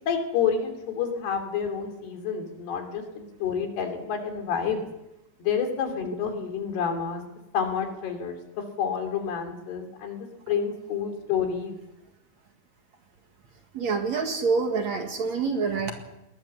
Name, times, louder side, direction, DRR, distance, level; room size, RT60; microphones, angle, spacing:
voice 1, 0.1-4.8 5.4-7.3 7.5-11.8, left 7 dB, 80° left, 4 dB, 4.9 m, -29 dB
voice 2, 13.7-15.9, right 4 dB, 50° right, 4 dB, 2.7 m, -26 dB
21.0 x 19.5 x 7.5 m, 0.93 s
omnidirectional pair, 4.6 m